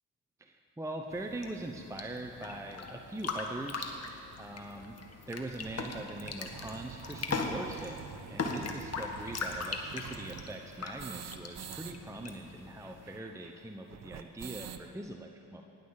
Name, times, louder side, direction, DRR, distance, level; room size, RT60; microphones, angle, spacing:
voice 1, 0.4-3.9 4.4-5.0 5.3-15.6, right 2 dB, 5° right, 3 dB, 0.9 m, -42 dB
sound 1, 1.1-13.2, left 4 dB, 35° left, 1.7 m, -40 dB
sound 2, 3.3-3.4 4.0-4.1 4.4-4.5 4.8-4.9 5.3-11.9 12.2-12.3 12.5-14.9, right 8 dB, 40° right, 0.8 m, -47 dB
18.5 x 6.7 x 7.4 m, 2.8 s
hypercardioid pair, 60°, 42 cm